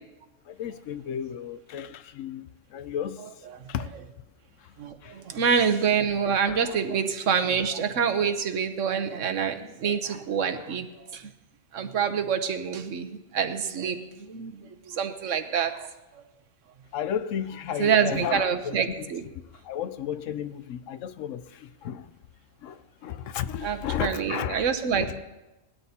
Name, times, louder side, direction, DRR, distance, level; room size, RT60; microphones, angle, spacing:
voice 1, 0.5-3.9 4.6-4.7 5.0-5.2 6.4-6.6 16.9-19.1 19.5-22.1 22.6-24.7 25.0-25.2, left 9 dB, 80° left, 1.0 m, -34 dB
voice 2, 4.8-11.3 11.7-15.9 16.1-16.2 17.8-19.2 23.6-25.2, right 7 dB, 75° right, 1.2 m, -27 dB
19.5 x 12.5 x 2.9 m
omnidirectional pair, 1.3 m